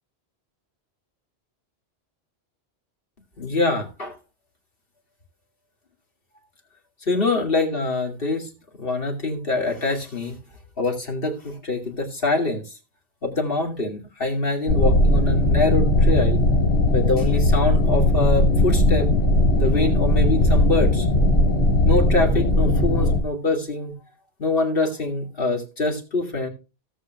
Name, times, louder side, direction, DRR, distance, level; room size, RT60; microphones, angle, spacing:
voice 1, 3.4-4.2 7.0-8.5 8.8-10.4 10.8-12.8 13.2-16.4 16.9-19.1 19.5-21.1 21.8-23.9 24.4-26.5, left 2 dB, 60° left, 2.5 m, -24 dB
sound 1, 14.7-23.2, left 1 dB, 80° left, 2.1 m, -18 dB
17.0 x 7.6 x 2.3 m
omnidirectional pair, 1.1 m